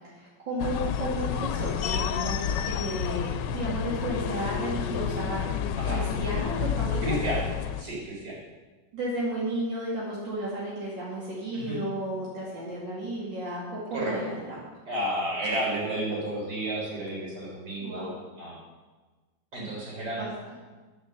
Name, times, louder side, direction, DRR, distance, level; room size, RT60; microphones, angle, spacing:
voice 1, 0.1-7.2 8.9-14.6 17.8-18.1 20.1-20.5, right 1 dB, 85° right, -7 dB, 3.2 m, -33 dB
sound 1, 0.6-7.8, left 8 dB, 80° left, 1.2 m, -30 dB
voice 2, 5.8-6.2 7.0-7.5 7.8-8.4 11.5-11.8 13.9-14.2 14.9-18.1 18.4-18.6 19.5-20.2, right 1 dB, 60° right, -4 dB, 4.4 m, -31 dB
10.5 x 8.8 x 7.0 m, 1.3 s
omnidirectional pair, 2.0 m